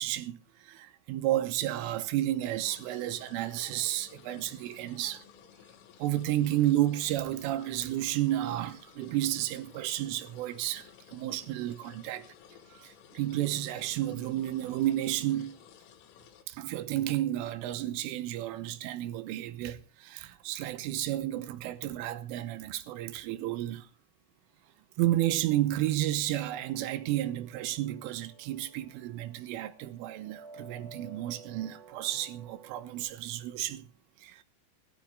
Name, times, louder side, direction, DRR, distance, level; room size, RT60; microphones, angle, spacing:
voice 1, 0.0-5.2 6.0-12.3 12.7-15.6 16.5-23.9 25.0-33.9 34.2-34.4, right 14 dB, 85° right, 3.4 m, -32 dB
sound 1, 2.6-16.4, left 10 dB, 85° left, 3.9 m, -55 dB
sound 2, 26.2-33.1, right 4 dB, 50° right, 2.9 m, -54 dB
16.5 x 13.0 x 3.6 m
omnidirectional pair, 5.8 m